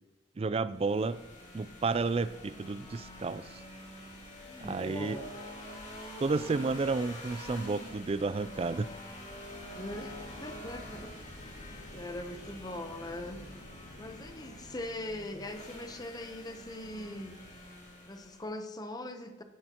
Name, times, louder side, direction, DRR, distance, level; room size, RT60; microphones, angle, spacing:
voice 1, 0.4-1.2 1.5-3.5 4.6-5.2 6.2-8.9, right 3 dB, 30° right, 15 dB, 0.3 m, -31 dB
sound 1, 0.7-18.5, left 1 dB, 40° left, 2.7 m, -47 dB
voice 2, 4.4-5.3 9.7-10.1 10.4-11.1 11.9-13.4 14.0-17.4 18.1-19.4, left 1 dB, 20° left, 7 dB, 0.8 m, -41 dB
sound 2, 9.7-14.8, left 1 dB, 65° left, 2.3 m, -53 dB
16.0 x 10.5 x 3.0 m, 1.2 s
head